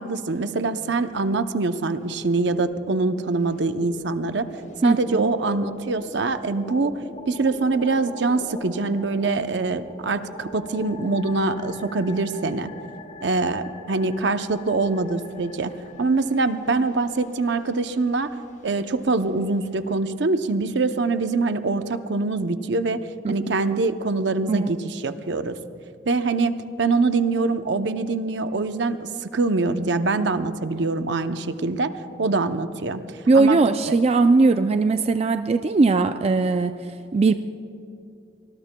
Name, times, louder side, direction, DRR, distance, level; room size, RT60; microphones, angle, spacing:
voice 1, 0.0-4.5 4.8-6.9 7.3-12.7 13.2-15.7 16.0-18.3 18.6-25.6 26.1-31.9 32.2-33.0 33.3-33.6 33.8-33.9, right 3 dB, 65° right, 10 dB, 0.6 m, -24 dB
sound 1, 0.9-1.7 2.0-20.0, left 2 dB, 40° left, 1.2 m, -43 dB
voice 2, 4.8-5.3 23.2-23.3 24.4-24.7 33.3-36.8 37.1-37.3, right 3 dB, 35° right, 8 dB, 0.3 m, -19 dB
25.0 x 20.0 x 2.2 m, 2.6 s
head